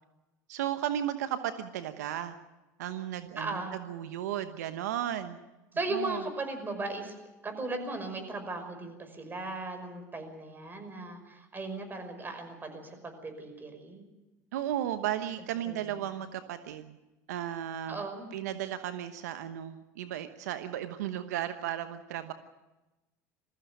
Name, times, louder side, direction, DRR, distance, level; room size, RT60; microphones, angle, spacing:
voice 1, 0.5-2.4 2.8-5.4 5.9-6.2 14.5-17.0 17.3-18.0 18.3-22.3, right 11 dB, 80° right, 10 dB, 1.1 m, -34 dB
voice 2, 3.4-3.7 5.7-7.1 7.4-14.0 15.7-16.0 17.9-18.3, right 2 dB, 20° right, 6 dB, 5.5 m, -37 dB
21.5 x 15.0 x 9.2 m, 1.1 s
hypercardioid pair, 90°, 9 cm